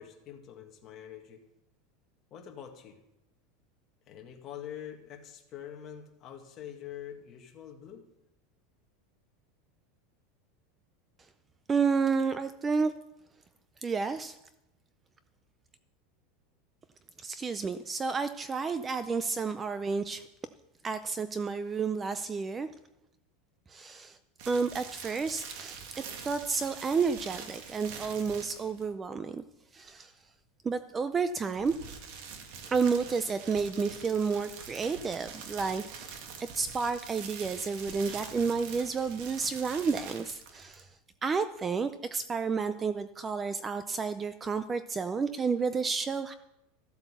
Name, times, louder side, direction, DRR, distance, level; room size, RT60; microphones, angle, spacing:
voice 1, 0.0-1.4 2.3-3.0 4.1-8.0, left 9 dB, 30° left, 2 dB, 1.9 m, -45 dB
voice 2, 11.7-12.9 13.8-14.4 17.2-20.2 20.8-22.7 23.7-24.2 24.5-29.4 29.7-30.1 30.6-31.7 32.7-36.2 36.5-40.9 41.2-46.3, right 5 dB, 15° right, 12 dB, 0.4 m, -31 dB
sound 1, 24.4-28.9 31.3-40.9, right 6 dB, 55° right, 1.9 m, -45 dB
14.0 x 8.2 x 6.9 m, 0.89 s
supercardioid pair, 165°, 0 cm